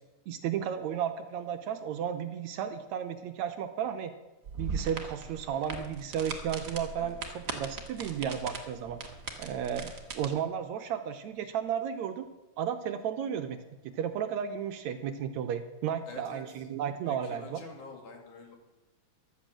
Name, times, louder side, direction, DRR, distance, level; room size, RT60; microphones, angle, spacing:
voice 1, 0.3-4.1 4.6-9.0 9.4-12.3 12.6-13.6 13.8-17.6, right 8 dB, 75° right, 8 dB, 1.9 m, -33 dB
sound 1, 4.4-10.3, right 5 dB, 40° right, 1.5 m, -39 dB
voice 2, 16.1-16.4 17.1-18.6, left 4 dB, 70° left, 2 dB, 3.8 m, -47 dB
14.0 x 11.5 x 7.6 m, 1.1 s
omnidirectional pair, 3.7 m